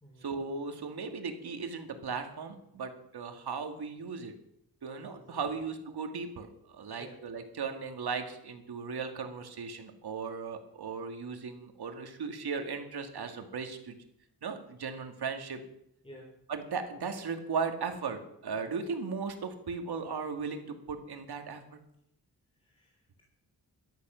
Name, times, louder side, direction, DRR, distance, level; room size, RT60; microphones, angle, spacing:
voice 1, 0.2-4.3 4.8-14.0 14.4-15.6 16.5-21.8, right 5 dB, 75° right, 6 dB, 2.2 m, -37 dB
voice 2, 22.6-23.2, equal, 15° left, -1 dB, 3.5 m, -53 dB
14.0 x 12.0 x 6.3 m, 0.77 s
wide cardioid pair, 135°, 39 cm